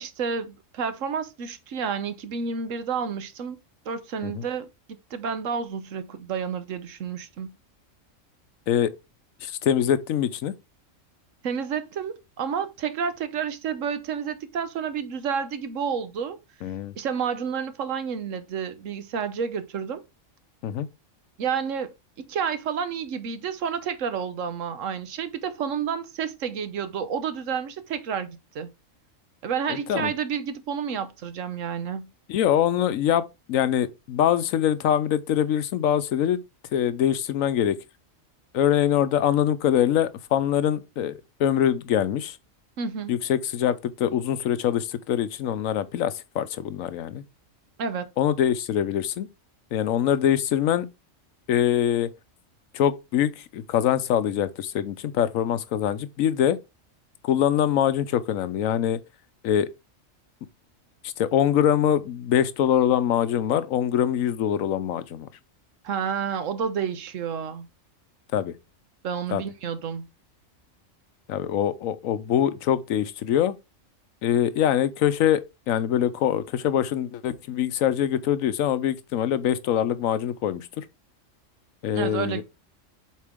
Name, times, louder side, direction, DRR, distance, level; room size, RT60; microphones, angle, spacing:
voice 1, 0.0-3.6 3.9-4.7 5.1-7.5 11.4-16.4 17.0-20.0 21.4-28.7 29.4-32.1 42.8-43.1 47.8-48.1 65.8-67.7 69.0-70.1 82.0-82.4, right 7 dB, 75° right, 1.2 m, -30 dB
voice 2, 9.4-10.5 16.6-16.9 20.6-20.9 29.9-30.1 32.3-33.2 33.5-36.4 36.7-37.8 38.5-41.1 41.4-42.4 43.1-47.2 48.2-49.3 49.7-50.9 51.5-52.1 52.7-56.6 57.2-59.0 59.4-59.7 61.0-65.3 68.3-68.5 69.3-69.4 71.3-73.6 74.2-80.8 81.8-82.4, left 10 dB, 80° left, 1.1 m, -24 dB
7.4 x 4.3 x 3.6 m
omnidirectional pair, 1.4 m